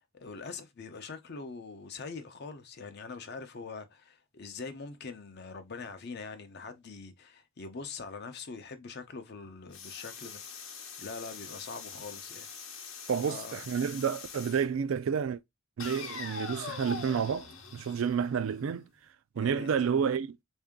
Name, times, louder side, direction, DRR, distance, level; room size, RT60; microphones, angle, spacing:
voice 1, 0.1-12.5 13.2-13.6 19.4-19.7, left 4 dB, 50° left, 0.6 m, -43 dB
sound 1, 9.7-14.7 15.8-18.7, left 5 dB, 75° left, 0.9 m, -43 dB
voice 2, 13.1-15.4 15.8-18.9 19.4-20.4, right 7 dB, 70° right, 0.3 m, -30 dB
3.7 x 2.7 x 3.5 m
head